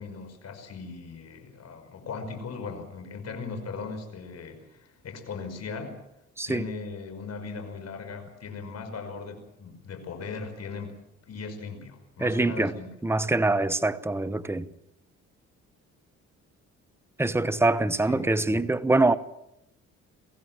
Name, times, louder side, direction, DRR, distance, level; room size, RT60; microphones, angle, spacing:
voice 1, 0.0-6.0 6.5-11.0 11.3-12.9 18.1-18.3, left 4 dB, 55° left, 5.5 m, -38 dB
voice 2, 12.2-12.7 13.0-14.7 17.2-19.2, right 2 dB, 10° right, 1.0 m, -24 dB
24.0 x 16.0 x 7.5 m
cardioid pair, 90°, 30 cm